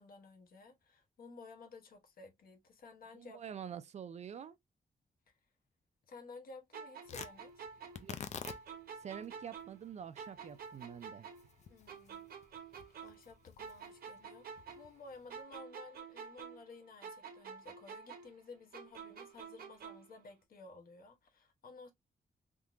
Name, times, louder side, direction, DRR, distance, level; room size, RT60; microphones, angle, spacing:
voice 1, 0.0-3.4 5.3-5.4 6.1-7.7 11.7-12.3 13.0-21.9, left 3 dB, 70° left, 1.1 m, -54 dB
voice 2, 3.1-4.6 8.0-8.2 9.0-11.3, right 8 dB, 50° right, 0.4 m, -46 dB
sound 1, 6.7-9.9 10.2-13.3 13.6-16.7 17.0-20.2, right 6 dB, 85° right, 1.0 m, -49 dB
Tearing, 7.0-15.4, left 7 dB, 50° left, 0.4 m, -51 dB
3.6 x 2.8 x 2.5 m
wide cardioid pair, 155°, 15 cm